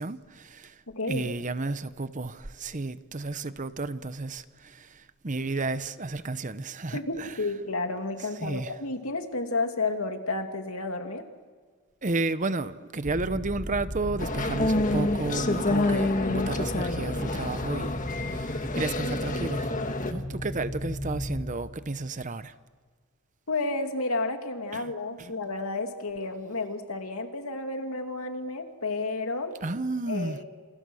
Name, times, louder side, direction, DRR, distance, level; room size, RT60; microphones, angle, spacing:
voice 1, 0.0-0.8 1.1-7.4 8.4-8.7 12.0-19.7 20.0-22.5 24.7-24.9 25.2-25.3 29.6-30.4, right 3 dB, 35° right, 0.9 m, -32 dB
voice 2, 0.9-1.2 6.9-11.2 23.5-29.5 30.1-30.4, left 3 dB, 85° left, 2.6 m, -31 dB
sound 1, 13.0-21.4, equal, 15° left, 4.8 m, -36 dB
sound 2, 14.2-20.1, left 2 dB, 35° left, 1.7 m, -28 dB
29.5 x 27.5 x 6.4 m
head